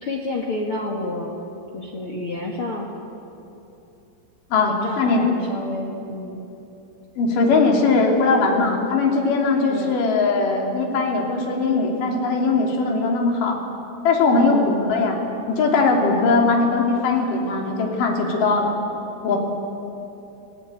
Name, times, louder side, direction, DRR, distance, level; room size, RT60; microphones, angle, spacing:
voice 1, 0.0-1.3 1.7-2.9 4.6-6.4 9.7-9.9 14.4-14.9 16.2-16.5, left 2 dB, 70° left, 1 dB, 1.3 m, -29 dB
voice 2, 4.5-5.2 7.2-13.6 14.0-15.2 15.5-18.7 19.2-19.4, left 3 dB, 45° left, 0 dB, 4.2 m, -20 dB
28.5 x 18.0 x 9.2 m, 2.9 s
omnidirectional pair, 6.0 m